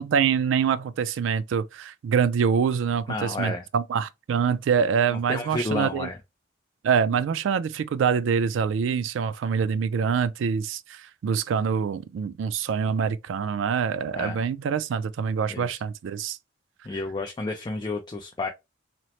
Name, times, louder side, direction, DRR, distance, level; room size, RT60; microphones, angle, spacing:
voice 1, 0.0-6.1 6.8-16.4, right 6 dB, 75° right, 0.3 m, -25 dB
voice 2, 3.1-3.7 5.3-6.2 14.1-14.4 15.5-15.8 16.8-18.5, left 2 dB, 25° left, 0.3 m, -31 dB
2.9 x 2.0 x 2.9 m
head